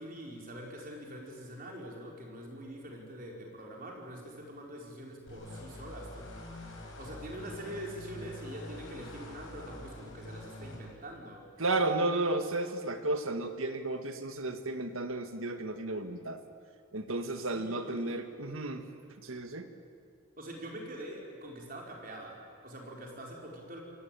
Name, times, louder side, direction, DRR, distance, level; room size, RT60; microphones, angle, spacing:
voice 1, 0.0-6.3 6.6-11.5 17.5-18.1 20.4-23.8, equal, 40° right, 0 dB, 4.8 m, -44 dB
sound 1, 5.3-10.8, left 1 dB, 65° left, 5.8 m, -46 dB
voice 2, 11.6-16.4 16.9-18.9 19.2-19.7, right 2 dB, 75° right, 7 dB, 1.9 m, -33 dB
28.0 x 16.5 x 9.1 m, 2.4 s
head